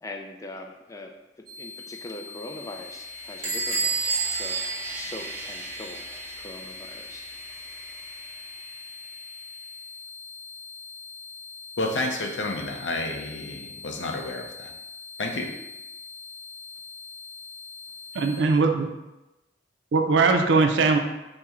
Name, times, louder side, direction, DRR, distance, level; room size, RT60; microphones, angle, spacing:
voice 1, 0.0-4.6 4.9-6.1 6.4-7.3, left 2 dB, 20° left, 3 dB, 0.3 m, -41 dB
sound 1, 1.5-18.4, left 4 dB, 60° right, 1.0 m, -43 dB
Sawing, 2.3-9.7, right 1 dB, 10° right, 0.6 m, -43 dB
Bell / Squeak, 3.4-5.9, right 4 dB, 30° right, 1.0 m, -29 dB
voice 2, 11.8-14.7 15.2-15.5, left 2 dB, 90° left, 2 dB, 0.6 m, -30 dB
voice 3, 18.1-18.9 19.9-21.0, right 4 dB, 90° right, 5 dB, 0.4 m, -20 dB
4.4 x 2.1 x 3.5 m, 1.0 s
head